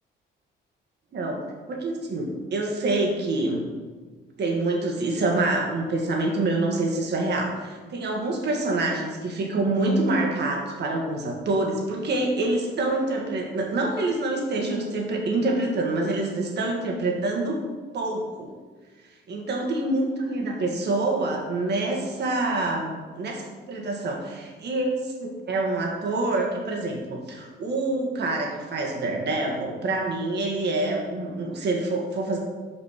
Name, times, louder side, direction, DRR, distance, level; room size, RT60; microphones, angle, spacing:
voice 1, 1.7-3.7 4.4-17.6 17.9-18.5 19.3-32.4, right 2 dB, 60° right, 0 dB, 1.7 m, -26 dB
6.1 x 5.1 x 6.3 m, 1.4 s
cardioid pair, 90°, 20 cm